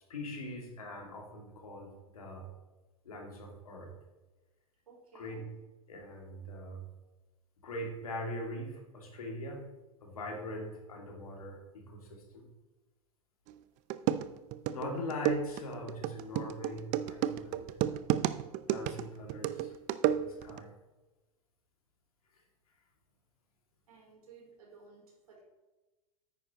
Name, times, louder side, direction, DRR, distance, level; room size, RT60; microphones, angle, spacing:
voice 1, 0.1-2.5 3.0-3.9 5.1-5.5 5.9-6.8 7.6-9.6 10.0-12.4 14.7-17.8 18.7-19.7 20.1-20.7, left 1 dB, 80° left, 1 dB, 2.4 m, -42 dB
voice 2, 4.9-5.5 23.9-25.4, right 4 dB, 75° right, -1 dB, 3.5 m, -56 dB
sound 1, 13.5-13.6 13.9-20.6, right 12 dB, 40° right, 0.5 m, -32 dB
10.0 x 8.9 x 3.0 m, 1.1 s
hypercardioid pair, 100°, 18 cm